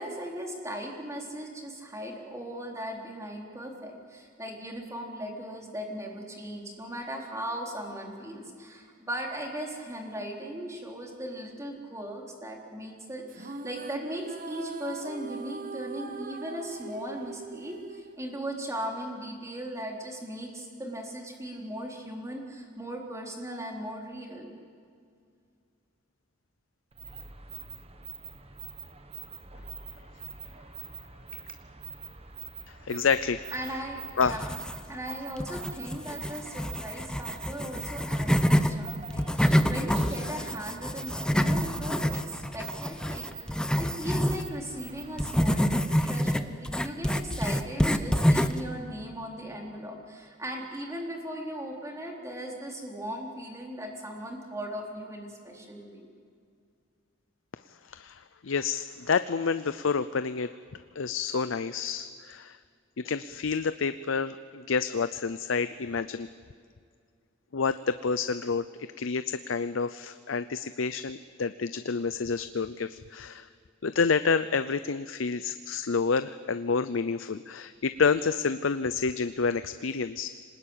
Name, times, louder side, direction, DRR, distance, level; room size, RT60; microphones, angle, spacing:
voice 1, 0.0-24.5 33.5-34.5 34.9-43.5 43.8-56.1, equal, 15° right, 0 dB, 4.0 m, -38 dB
sound 1, 13.3-18.8, right 4 dB, 45° right, 1.0 m, -42 dB
sound 2, 26.9-45.8, right 6 dB, 30° right, 1.4 m, -45 dB
voice 2, 32.9-33.4 34.2-34.4 57.9-60.5 61.0-62.6 63.0-66.3 67.5-68.6 69.0-73.5 73.8-80.3, left 5 dB, 80° left, 12 dB, 0.6 m, -28 dB
sound 3, 34.2-35.0 35.4-38.7 39.1-44.5 45.2-48.7, equal, 5° left, 0.9 m, -27 dB
25.5 x 20.0 x 9.0 m, 2.2 s
head